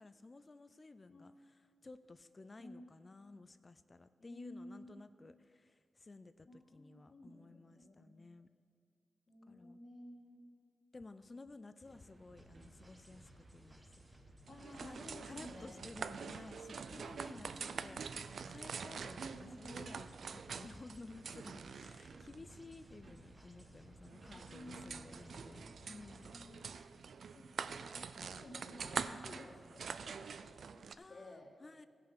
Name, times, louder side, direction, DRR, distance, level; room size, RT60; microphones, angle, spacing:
voice 1, 0.0-8.5 9.5-9.8 10.9-13.9 14.8-15.0 15.2-26.3 29.3-29.6 31.0-31.9, left 3 dB, 35° left, 12 dB, 0.3 m, -55 dB
voice 2, 4.2-5.0 6.5-8.2 9.3-10.6 14.5-15.8 17.2-18.2 19.3-20.2 24.3-25.3 25.8-26.8 27.3-30.8 31.1-31.5, left 1 dB, 50° left, 0 dB, 1.9 m, -54 dB
sound 1, 11.8-26.5, right 2 dB, 40° right, 1.1 m, -61 dB
sound 2, 12.4-26.4, equal, 15° right, 1.3 m, -63 dB
sound 3, 14.5-30.9, right 6 dB, 70° right, 0.3 m, -46 dB
16.0 x 5.6 x 5.1 m, 2.1 s
cardioid pair, 85°, 0 cm